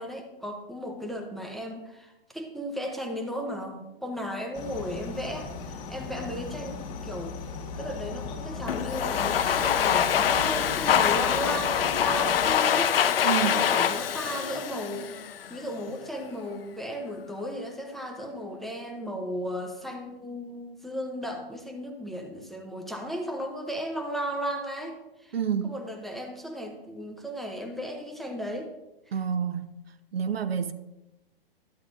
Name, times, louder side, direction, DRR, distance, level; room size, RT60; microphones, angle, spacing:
voice 1, 0.0-7.4 7.8-12.9 13.4-15.1 15.5-25.0 25.2-25.4 25.6-28.7 29.1-29.2, equal, ahead, 0.7 m, -35 dB
sound 1, 4.5-12.6, left 4 dB, 30° left, 2.2 m, -38 dB
Domestic sounds home sounds, 8.7-15.6, left 9 dB, 70° left, 0.7 m, -25 dB
voice 2, 13.2-13.6 25.3-25.8 29.1-29.7 30.1-30.7, right 7 dB, 80° right, 0.8 m, -28 dB
12.5 x 8.2 x 2.5 m
hypercardioid pair, 130°, 30 cm